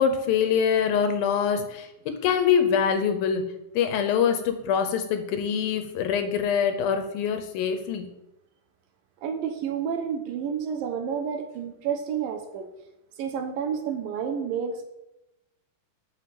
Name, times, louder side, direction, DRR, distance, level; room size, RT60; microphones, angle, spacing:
voice 1, 0.0-8.1, left 7 dB, 75° left, 8 dB, 2.5 m, -24 dB
voice 2, 9.2-12.7 13.2-14.8, right 7 dB, 70° right, 6 dB, 2.5 m, -30 dB
9.8 x 5.7 x 7.7 m, 0.89 s
omnidirectional pair, 4.5 m